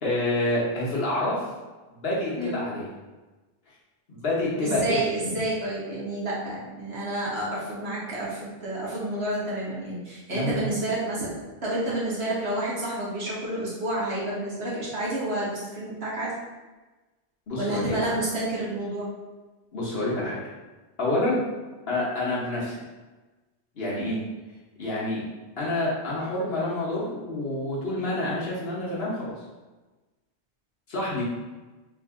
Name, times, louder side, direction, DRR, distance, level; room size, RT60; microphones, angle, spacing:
voice 1, 0.0-1.5 1.9-2.9 4.1-5.0 10.3-10.7 17.5-18.0 19.7-20.4 21.0-21.4 21.9-22.8 23.7-24.2 24.8-25.2 25.6-29.3 30.9-31.2, left 2 dB, 60° left, -6 dB, 1.2 m, -28 dB
voice 2, 4.6-11.3 11.6-16.3 17.6-19.1 21.3-21.4 24.0-24.2, right 1 dB, 65° right, -7 dB, 1.4 m, -29 dB
3.5 x 2.6 x 3.6 m, 1.2 s
omnidirectional pair, 1.1 m